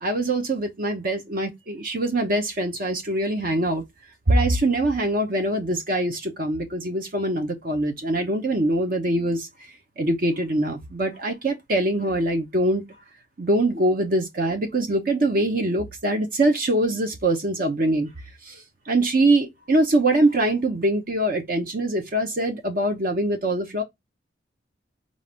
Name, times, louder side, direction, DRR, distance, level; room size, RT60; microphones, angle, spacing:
voice 1, 0.0-3.8 4.3-9.5 10.0-12.8 13.4-18.1 18.4-23.8, right 1 dB, 50° right, 0.8 m, -23 dB
5.4 x 2.5 x 3.5 m
head